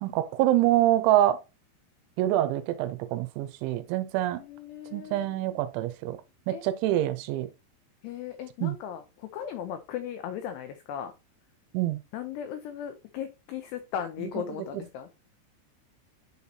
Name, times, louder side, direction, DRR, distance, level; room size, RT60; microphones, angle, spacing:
voice 1, 0.0-1.4 2.2-4.4 4.9-6.2 6.5-7.5 8.6-8.8 11.7-12.0 14.5-14.6, right 13 dB, 80° right, 3.0 m, -25 dB
voice 2, 4.4-5.7 6.5-6.6 8.0-11.1 12.1-15.1, left 9 dB, 90° left, 2.3 m, -37 dB
10.0 x 4.1 x 2.8 m
omnidirectional pair, 5.6 m